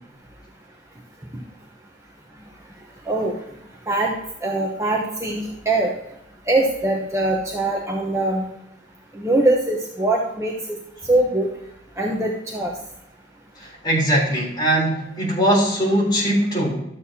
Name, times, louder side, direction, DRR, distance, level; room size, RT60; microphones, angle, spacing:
voice 1, 4.4-5.9 6.5-8.4 9.1-10.8 11.1-11.5 12.0-12.7, right 2 dB, 15° right, -2 dB, 0.9 m, -22 dB
voice 2, 13.6-16.7, right 1 dB, 25° left, -4 dB, 3.7 m, -20 dB
12.0 x 7.8 x 2.8 m, 0.81 s
head